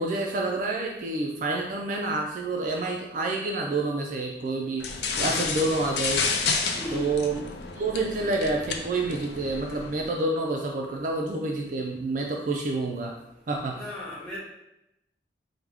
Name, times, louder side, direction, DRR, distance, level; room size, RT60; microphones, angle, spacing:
voice 1, 0.0-4.9 5.2-6.2 6.9-7.5 7.7-13.1 13.5-13.8, right 2 dB, 45° right, 1 dB, 0.3 m, -28 dB
sound 1, 4.8-10.1, left 4 dB, 70° left, 0.4 m, -30 dB
voice 2, 6.7-7.1 13.7-14.4, left 1 dB, 5° left, -10 dB, 1.3 m, -35 dB
4.7 x 2.1 x 3.4 m, 0.86 s
head